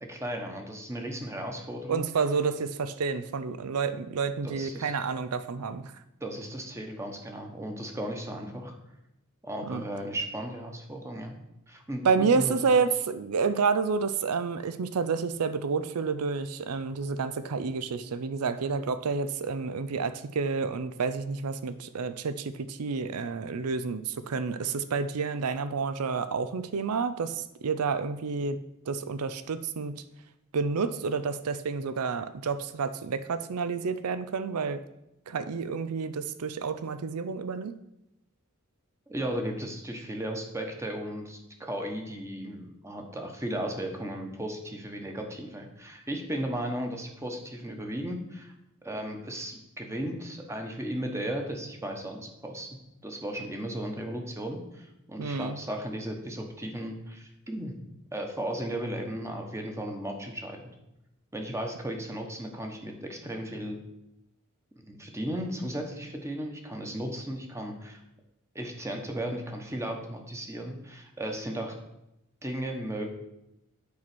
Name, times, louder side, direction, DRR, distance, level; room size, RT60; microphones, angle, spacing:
voice 1, 0.1-2.0 4.4-4.9 6.2-8.7 9.4-11.4 11.7-12.6 39.1-48.5 48.8-52.7 53.0-57.8 58.1-60.6 61.3-63.8 64.8-68.0 68.5-71.7 72.4-73.0, right 1 dB, 15° right, 3 dB, 1.1 m, -35 dB
voice 2, 1.9-5.9 9.7-9.8 12.0-28.6 28.9-30.0 30.5-34.8 35.3-37.8 55.2-55.6, right 5 dB, 90° right, 13 dB, 0.5 m, -29 dB
8.6 x 4.6 x 6.1 m, 0.87 s
head